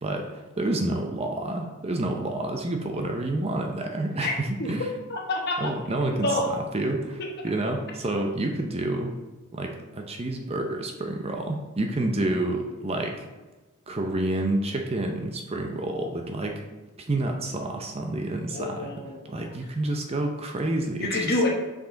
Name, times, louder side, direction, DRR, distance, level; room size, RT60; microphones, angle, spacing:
voice 1, 0.0-4.9 5.6-9.1 9.5-13.3 13.9-16.7 17.1-18.9 19.2-21.4, right 2 dB, 25° right, 3 dB, 0.6 m, -29 dB
voice 2, 5.1-5.7 6.2-6.5 18.5-19.5 21.0-21.5, left 2 dB, 45° left, 0 dB, 1.1 m, -27 dB
5.9 x 5.1 x 3.8 m, 1.2 s
head